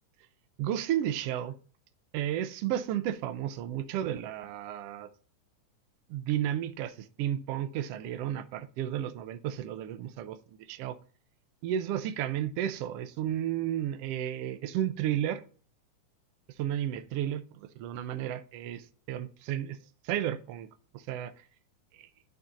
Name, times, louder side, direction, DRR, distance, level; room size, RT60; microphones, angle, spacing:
voice 1, 0.6-1.5 2.1-5.1 6.1-10.4 10.7-11.0 11.6-15.4 16.6-19.8 20.0-20.7 20.9-21.3 22.0-22.1, right 11 dB, 85° right, 1.3 m, -32 dB
11.5 x 4.0 x 3.8 m
omnidirectional pair, 3.6 m